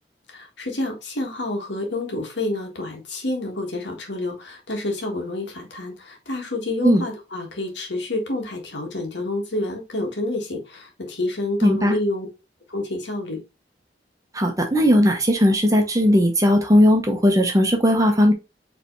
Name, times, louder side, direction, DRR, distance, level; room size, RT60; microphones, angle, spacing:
voice 1, 0.3-12.3 12.7-13.4, left 2 dB, 85° left, 1.5 m, -28 dB
voice 2, 11.6-12.0 14.3-18.3, equal, 20° right, 0.9 m, -17 dB
4.8 x 3.4 x 3.1 m
head